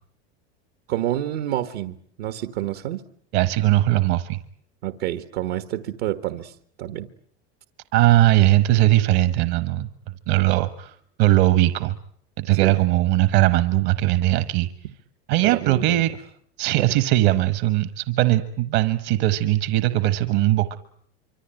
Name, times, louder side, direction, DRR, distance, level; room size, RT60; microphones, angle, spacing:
voice 1, 0.9-3.0 4.8-7.1 12.6-12.8 15.4-16.1 16.8-16.9, right 13 dB, 80° right, 10 dB, 1.5 m, -28 dB
voice 2, 3.3-4.4 7.9-9.9 10.3-12.0 12.4-14.7 15.3-16.1 16.6-20.8, right 15 dB, 60° right, 13 dB, 1.4 m, -19 dB
25.5 x 25.5 x 8.9 m, 0.65 s
supercardioid pair, 130°, 33 cm